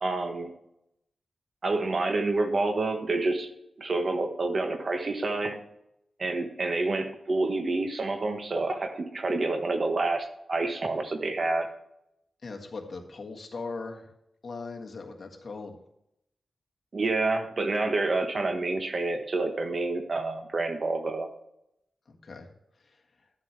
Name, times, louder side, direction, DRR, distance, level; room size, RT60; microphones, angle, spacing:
voice 1, 0.0-0.5 1.6-3.5 3.8-5.6 6.2-11.7 16.9-21.3, right 2 dB, 50° right, 6 dB, 1.2 m, -28 dB
voice 2, 12.4-14.1 14.4-15.8 22.1-22.5 22.9-23.0, left 3 dB, 55° left, 2 dB, 1.6 m, -39 dB
12.0 x 7.5 x 3.4 m, 0.80 s
cardioid pair, 80°, 0 cm